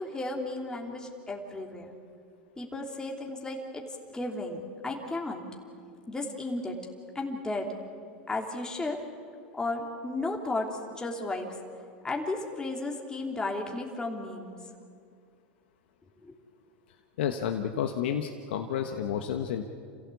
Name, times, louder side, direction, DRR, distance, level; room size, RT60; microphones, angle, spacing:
voice 1, 0.0-1.9 2.6-5.4 6.1-6.8 7.1-7.7 8.3-9.0 9.6-11.6 12.0-14.6 16.2-16.4, left 2 dB, 15° left, 0 dB, 3.1 m, -34 dB
voice 2, 17.2-19.6, left 9 dB, 80° left, 5 dB, 1.2 m, -30 dB
27.5 x 16.0 x 8.4 m, 2.3 s
hypercardioid pair, 110°, 6 cm